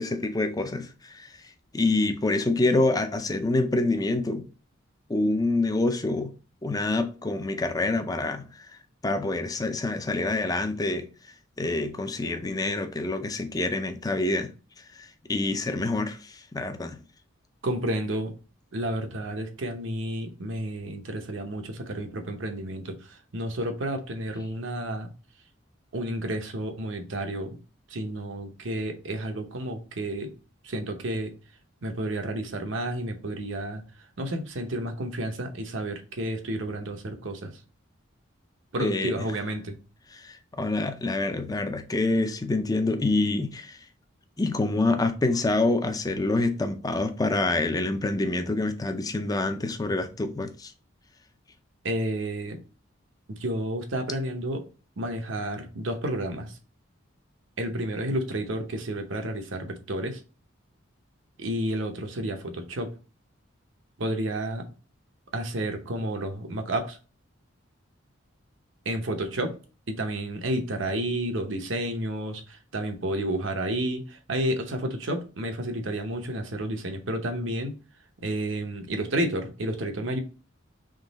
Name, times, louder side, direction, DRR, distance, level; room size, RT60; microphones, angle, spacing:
voice 1, 0.0-1.3 1.7-4.5 5.1-6.3 6.6-8.7 9.0-11.1 11.6-14.5 15.0-17.0 38.8-39.2 40.1-43.8 44.4-50.7, left 2 dB, 20° left, 0.5 m, -26 dB
voice 2, 17.6-18.3 18.7-25.1 25.9-27.6 27.9-30.3 30.6-31.3 31.8-33.8 34.2-37.6 38.7-39.8 51.8-52.6 53.3-54.7 55.0-56.5 57.6-60.2 61.4-62.9 64.0-64.7 65.3-67.0 68.8-69.5 69.9-77.8 78.2-80.2, right 1 dB, 70° right, 0.8 m, -31 dB
3.7 x 3.2 x 4.0 m
head